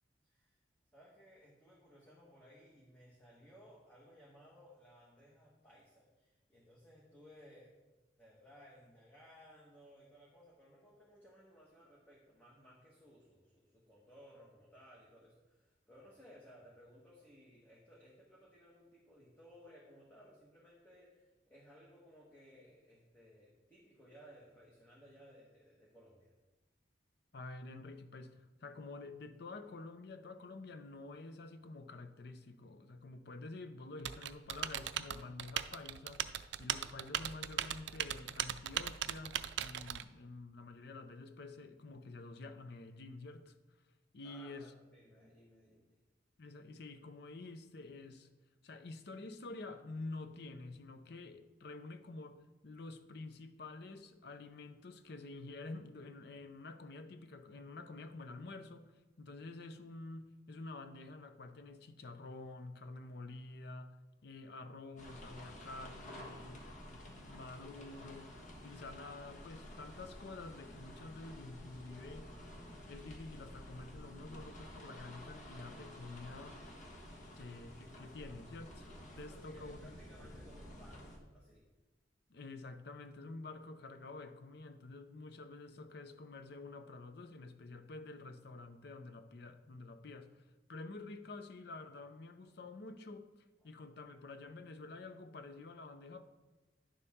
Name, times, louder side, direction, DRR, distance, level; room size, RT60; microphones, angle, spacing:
voice 1, 0.2-0.6 0.9-7.7 8.2-26.3 44.2-46.0 77.3-77.4 78.0-78.1 79.1-81.6 93.6-93.7, equal, 10° left, 1.5 m, -60 dB
voice 2, 27.3-36.3 36.6-43.5 44.1-44.7 46.4-48.3 48.6-64.0 64.2-72.3 72.9-76.6 77.4-78.9 79.2-80.0 82.3-93.3 93.6-96.2, left 3 dB, 60° left, 0.6 m, -49 dB
Typing, 34.0-40.0, right 10 dB, 75° right, 0.4 m, -39 dB
sound 1, 65.0-81.2, equal, 45° left, 1.4 m, -51 dB
10.5 x 6.8 x 3.6 m
head